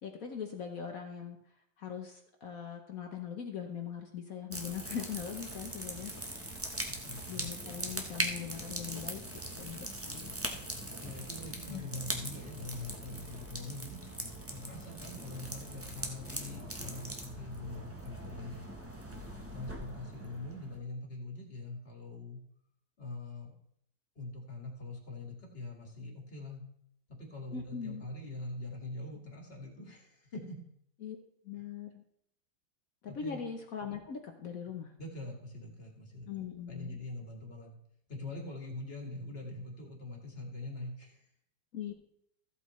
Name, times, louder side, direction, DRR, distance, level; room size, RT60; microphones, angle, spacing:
voice 1, 0.0-1.4 1.8-6.5 7.3-10.3 11.7-11.9 27.5-28.1 31.0-31.2 31.4-32.0 33.0-34.9 36.3-37.0 41.7-41.9, left 7 dB, 55° left, 4 dB, 1.1 m, -41 dB
sound 1, 4.5-20.8, right 1 dB, 15° right, 0.4 m, -41 dB
voice 2, 6.9-7.5 11.0-14.0 14.5-18.7 19.5-22.4 23.0-23.5 24.2-26.6 27.1-30.6 31.5-31.7 33.1-33.4 35.0-36.3 36.7-37.8 38.1-41.2, left 2 dB, 30° left, 0 dB, 2.0 m, -43 dB
14.5 x 8.3 x 3.1 m, 0.72 s
omnidirectional pair, 2.2 m